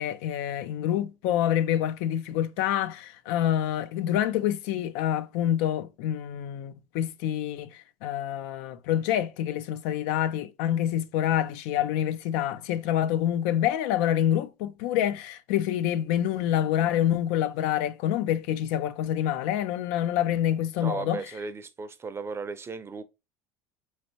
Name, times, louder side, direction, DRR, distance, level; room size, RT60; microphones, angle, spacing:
voice 1, 0.0-21.2, left 11 dB, 75° left, 0.5 m, -27 dB
voice 2, 20.8-23.0, right 4 dB, 25° right, 0.6 m, -36 dB
4.2 x 3.2 x 2.8 m
supercardioid pair, 85°, 10 cm